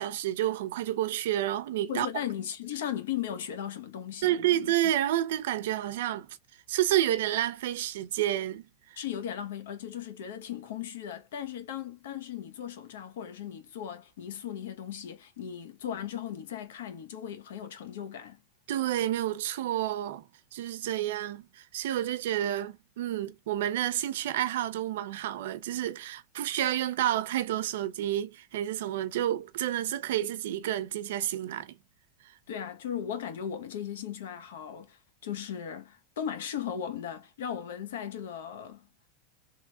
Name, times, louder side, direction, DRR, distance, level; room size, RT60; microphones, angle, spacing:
voice 1, 0.0-2.1 4.2-6.3 6.7-8.6 18.7-20.2 20.5-31.7, right 12 dB, 65° right, 0.6 m, -29 dB
voice 2, 1.9-4.9 9.0-18.4 32.5-38.8, left 9 dB, 85° left, 1.0 m, -37 dB
3.8 x 3.1 x 2.3 m
supercardioid pair, 180°, 0 cm